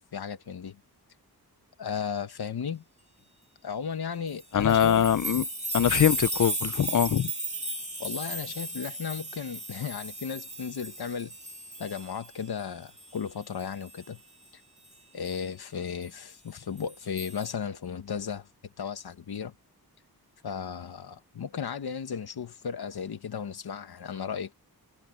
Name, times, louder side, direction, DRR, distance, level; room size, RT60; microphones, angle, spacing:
voice 1, 0.1-0.8 1.8-2.8 3.6-5.0 8.0-11.3 11.8-14.2 14.5-14.6 15.1-18.5 18.8-19.5 20.4-24.5, left 7 dB, 85° left, 1.5 m, -35 dB
sound 1, 4.3-12.6 13.0-14.0 15.2-15.4 16.8-17.5, right 2 dB, 20° right, 2.2 m, -35 dB
voice 2, 4.5-5.5 5.7-7.3, left 9 dB, 55° left, 0.6 m, -23 dB
wide cardioid pair, 120°, 37 cm